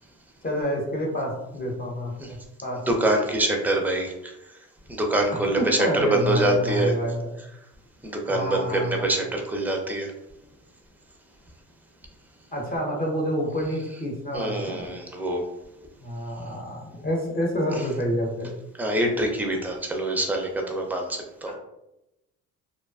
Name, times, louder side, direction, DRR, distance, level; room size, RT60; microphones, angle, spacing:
voice 1, 0.4-2.8 5.6-7.3 8.3-9.1 12.5-14.9 16.0-18.5, equal, 30° left, -2 dB, 0.8 m, -28 dB
voice 2, 2.9-4.3 4.9-6.9 8.0-10.1 14.3-15.4 18.8-21.5, right 1 dB, 5° right, 2 dB, 0.4 m, -25 dB
2.5 x 2.2 x 2.3 m, 0.90 s
cardioid pair, 90°, 30 cm